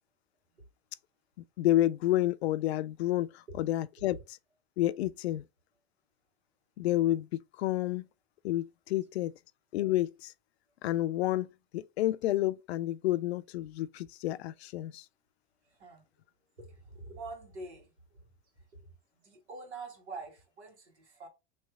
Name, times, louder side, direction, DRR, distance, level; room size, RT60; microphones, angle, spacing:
voice 1, 1.6-4.2 4.8-5.4 6.8-8.1 8.4-9.3 9.7-10.3 10.8-15.0, left 15 dB, 70° left, 0.5 m, -30 dB
voice 2, 15.7-16.0 16.6-17.9 19.1-21.3, right 3 dB, 80° right, 1.8 m, -45 dB
3.2 x 3.0 x 4.6 m
hypercardioid pair, 85°, 33 cm